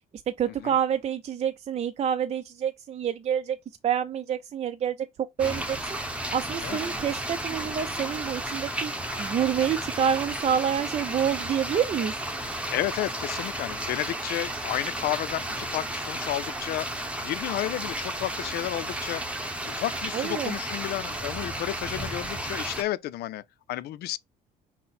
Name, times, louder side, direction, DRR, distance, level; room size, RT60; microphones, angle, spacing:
voice 1, 0.3-3.6 3.8-5.0 5.4-6.0 6.3-8.9 9.2-12.2 20.1-20.6, right 8 dB, 40° right, 0.5 m, -27 dB
sound 1, 5.4-22.8, right 1 dB, 5° right, 0.9 m, -33 dB
voice 2, 12.7-16.9 17.2-19.2 19.7-23.4 23.7-24.2, left 14 dB, 70° left, 0.5 m, -32 dB
5.8 x 2.1 x 4.2 m
cardioid pair, 110°, 17 cm